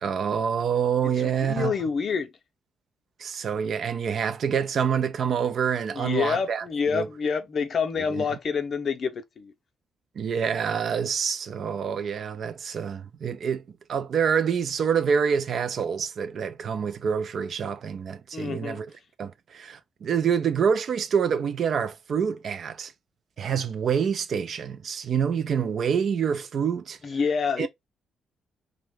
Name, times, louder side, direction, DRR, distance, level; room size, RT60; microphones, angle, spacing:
voice 1, 0.0-1.7 3.2-7.1 8.1-8.2 10.2-13.6 13.9-18.9 19.2-22.9 23.4-27.0 27.6-27.7, right 7 dB, 60° right, 0.4 m, -26 dB
voice 2, 1.0-2.3 5.9-9.5 18.3-18.8 27.0-27.7, left 6 dB, 55° left, 0.5 m, -27 dB
2.4 x 2.1 x 3.0 m
hypercardioid pair, 45°, 0 cm